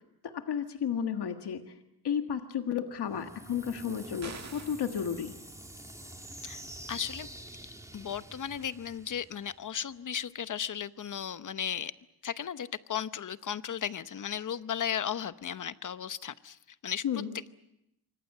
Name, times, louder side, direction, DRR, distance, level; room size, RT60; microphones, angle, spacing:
voice 1, 0.2-1.8 2.0-5.4 17.0-17.3, left 8 dB, 85° left, 6 dB, 1.7 m, -33 dB
sound 1, 3.0-9.9, right 1 dB, 10° right, 2.0 m, -47 dB
sound 2, 4.2-4.9, right 5 dB, 45° right, 1.9 m, -44 dB
voice 2, 6.9-7.3 7.9-11.9 12.2-17.0, left 8 dB, 50° left, 13 dB, 0.9 m, -35 dB
27.0 x 24.5 x 6.7 m, 0.81 s
wide cardioid pair, 130°, 38 cm